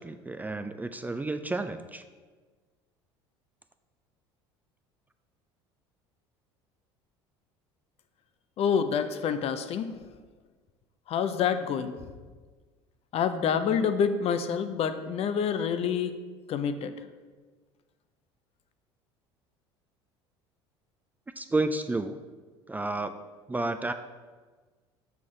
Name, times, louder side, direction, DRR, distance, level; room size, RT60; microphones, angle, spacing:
voice 1, 0.0-2.0 21.4-22.2 22.7-23.9, right 2 dB, 10° right, 9 dB, 0.3 m, -31 dB
voice 2, 8.6-9.9 11.1-11.9 13.1-16.2 16.5-16.9, left 7 dB, 45° left, 10 dB, 0.6 m, -27 dB
6.1 x 5.8 x 3.8 m, 1.4 s
hypercardioid pair, 70°, 14 cm